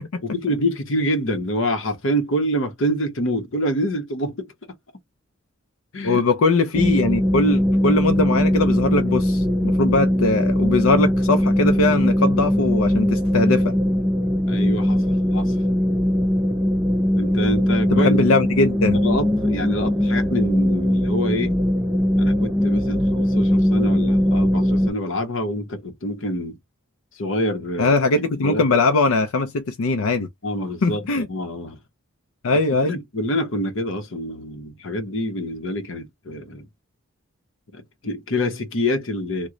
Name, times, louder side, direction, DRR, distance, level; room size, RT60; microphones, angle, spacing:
voice 1, 0.2-4.5 5.9-6.2 14.5-15.0 15.3-15.6 17.2-18.4 18.8-21.6 22.2-26.6 27.1-27.9 28.4-28.6 30.4-31.8 32.7-36.7 37.7-39.5, equal, 65° left, 0.9 m, -26 dB
voice 2, 6.0-13.8 17.9-19.0 27.8-30.3 30.8-31.3 32.4-32.9, left 3 dB, 85° left, 0.5 m, -21 dB
sound 1, 6.7-24.9, equal, 5° right, 0.4 m, -20 dB
3.0 x 2.1 x 3.7 m
head